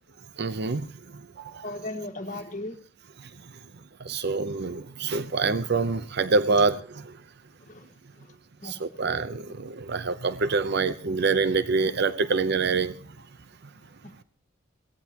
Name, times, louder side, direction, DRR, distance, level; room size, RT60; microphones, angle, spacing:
voice 1, 0.4-0.9 1.4-1.7 4.0-7.0 8.6-12.9, right 4 dB, 55° right, 12 dB, 0.7 m, -26 dB
voice 2, 1.6-2.8 7.7-7.9 8.2-8.3 8.6-8.7 14.0-14.2, left 1 dB, 40° left, 4 dB, 1.7 m, -36 dB
23.0 x 17.5 x 2.9 m, 0.43 s
head